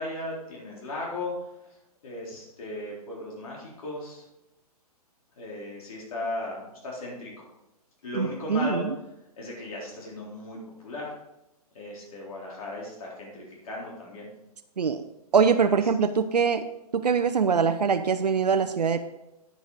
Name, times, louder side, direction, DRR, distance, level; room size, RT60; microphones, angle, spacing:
voice 1, 0.0-1.3 2.0-4.2 5.4-7.5 8.0-8.9 9.4-11.2 11.7-14.3 15.6-15.8 18.5-18.6, left 2 dB, 60° left, -3 dB, 3.9 m, -36 dB
voice 2, 8.1-8.9 14.8-15.0 15.3-16.7 16.9-19.0, right 6 dB, 90° right, 8 dB, 0.6 m, -23 dB
9.6 x 9.1 x 4.0 m, 0.92 s
hypercardioid pair, 130°, 20 cm